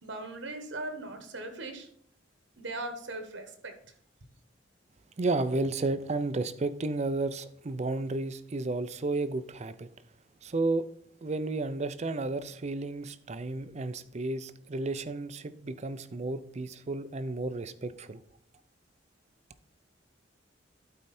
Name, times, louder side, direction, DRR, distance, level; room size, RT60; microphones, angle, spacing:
voice 1, 0.0-1.9 2.6-3.7, right 2 dB, 80° right, 1.3 m, -39 dB
voice 2, 5.2-9.9 10.4-10.8 11.2-18.2, right 2 dB, 35° right, 0.5 m, -32 dB
12.0 x 4.5 x 4.3 m
head